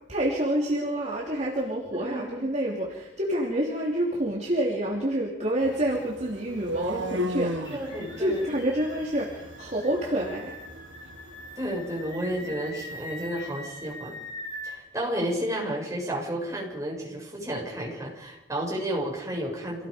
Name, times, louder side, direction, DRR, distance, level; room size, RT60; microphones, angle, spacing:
voice 1, 0.1-7.7 8.2-10.5, right 1 dB, 40° right, -3 dB, 3.3 m, -28 dB
voice 2, 1.9-2.4 7.7-8.5 11.6-14.2 14.6-19.9, right 1 dB, 15° right, -2 dB, 7.2 m, -32 dB
sound 1, 5.6-13.6, equal, 90° right, 1.9 m, -37 dB
sound 2, 7.6-14.8, left 1 dB, 25° left, 4.6 m, -42 dB
27.5 x 18.0 x 5.2 m, 0.97 s
head